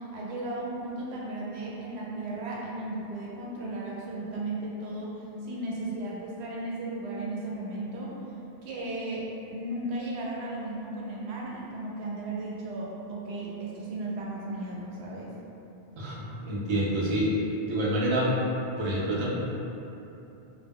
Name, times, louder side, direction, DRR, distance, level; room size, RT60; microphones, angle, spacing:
voice 1, 0.0-8.2 8.6-15.3, right 2 dB, 75° right, -5 dB, 0.8 m, -35 dB
voice 2, 16.4-17.3 17.7-18.3 18.8-19.3, right 1 dB, 50° right, -6 dB, 0.3 m, -27 dB
2.1 x 2.0 x 3.5 m, 2.9 s
omnidirectional pair, 1.1 m